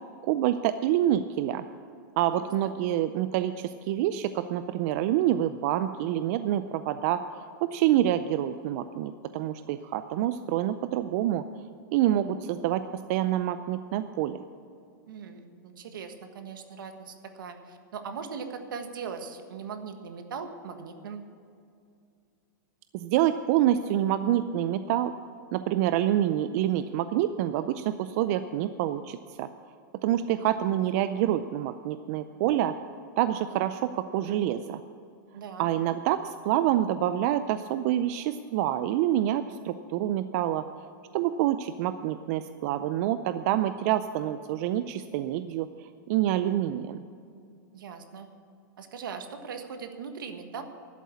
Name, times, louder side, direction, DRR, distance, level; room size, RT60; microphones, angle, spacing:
voice 1, 0.2-1.6 2.2-11.4 11.9-12.8 13.1-14.4 22.9-25.1 25.5-29.5 30.0-32.7 33.2-34.8 35.6-40.6 41.1-47.0, right 12 dB, 50° right, 11 dB, 0.5 m, -27 dB
voice 2, 15.1-21.2 35.3-35.7 47.7-48.3 48.8-50.6, right 6 dB, 85° right, 7 dB, 1.4 m, -40 dB
11.5 x 8.3 x 8.4 m, 2.4 s
hypercardioid pair, 135°, 11 cm